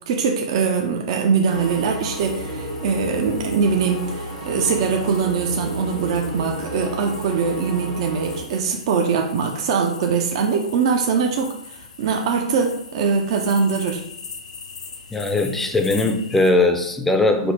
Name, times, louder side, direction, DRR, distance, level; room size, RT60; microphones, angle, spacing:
voice 1, 0.1-14.0, right 5 dB, 50° right, 3 dB, 0.5 m, -22 dB
sound 1, 1.4-8.4, right 1 dB, 80° right, 1.5 m, -31 dB
sound 2, 1.5-16.5, left 5 dB, 75° left, 0.6 m, -41 dB
voice 2, 15.1-17.5, left 2 dB, 5° left, 5 dB, 0.5 m, -19 dB
5.1 x 2.0 x 4.4 m, 0.76 s
hypercardioid pair, 120°, 4 cm